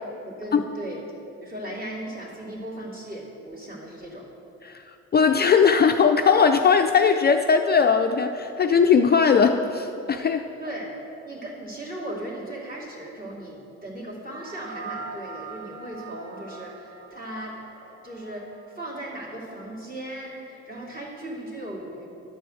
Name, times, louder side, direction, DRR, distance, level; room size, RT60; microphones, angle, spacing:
voice 1, 0.2-4.3 10.6-10.9 11.2-22.1, right 1 dB, 30° right, -4 dB, 2.7 m, -37 dB
voice 2, 5.1-10.5, left 6 dB, 35° left, 6 dB, 0.4 m, -19 dB
sound 1, 14.3-18.9, right 4 dB, 65° right, 1.0 m, -42 dB
11.5 x 4.6 x 7.7 m, 2.7 s
cardioid pair, 90°, 30 cm